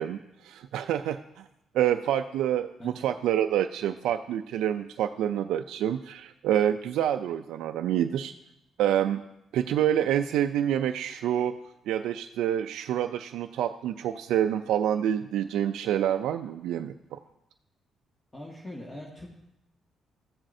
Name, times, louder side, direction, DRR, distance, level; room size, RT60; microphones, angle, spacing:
voice 1, 0.0-1.5 1.7-8.3 8.8-9.2 9.5-11.6 11.9-17.2, right 10 dB, 85° right, 7 dB, 0.3 m, -27 dB
voice 2, 18.3-19.3, left 1 dB, 20° left, -4 dB, 1.6 m, -41 dB
14.0 x 7.4 x 2.6 m, 0.86 s
cardioid pair, 90°, 0 cm